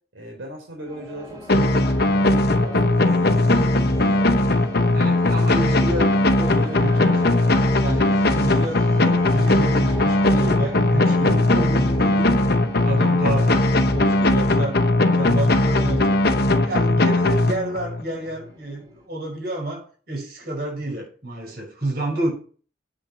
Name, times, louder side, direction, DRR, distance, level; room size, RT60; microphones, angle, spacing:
voice 1, 0.1-2.1 2.5-4.2 8.3-8.5 14.3-14.6, right 1 dB, 90° right, 3.9 m, -39 dB
sound 1, 0.8-19.0, equal, 20° right, 5.0 m, -40 dB
sound 2, 1.5-18.0, left 2 dB, 55° left, 0.9 m, -19 dB
voice 2, 4.9-7.5 7.8-12.5 12.8-14.8 15.1-22.3, right 1 dB, 50° right, 5.6 m, -30 dB
8.9 x 7.2 x 6.0 m
head